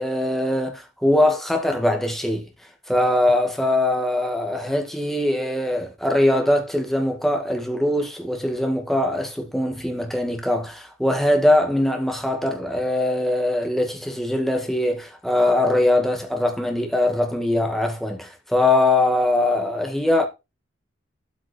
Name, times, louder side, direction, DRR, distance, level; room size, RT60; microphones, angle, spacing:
voice 1, 0.0-2.5 2.9-20.3, left 1 dB, ahead, 1.7 m, -22 dB
13.0 x 5.9 x 4.3 m
head